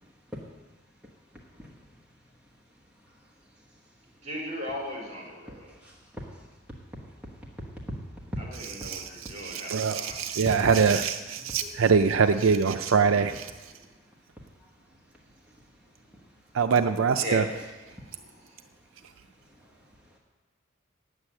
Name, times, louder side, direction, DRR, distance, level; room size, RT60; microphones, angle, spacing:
voice 1, 1.5-2.0 3.0-3.2 3.7-3.8 5.7-6.5 7.2-8.0 8.3-8.4 11.5-11.7 14.6-14.7 15.4-15.6 16.1-16.2 19.4-20.2, equal, 5° right, -4 dB, 1.2 m, -42 dB
voice 2, 4.2-5.7 8.4-10.3 17.2-17.5 17.9-18.6, equal, 35° right, -2 dB, 4.3 m, -38 dB
voice 3, 8.8-13.5 16.5-17.4, right 5 dB, 75° right, 8 dB, 0.5 m, -23 dB
9.7 x 8.1 x 8.7 m, 1.3 s
head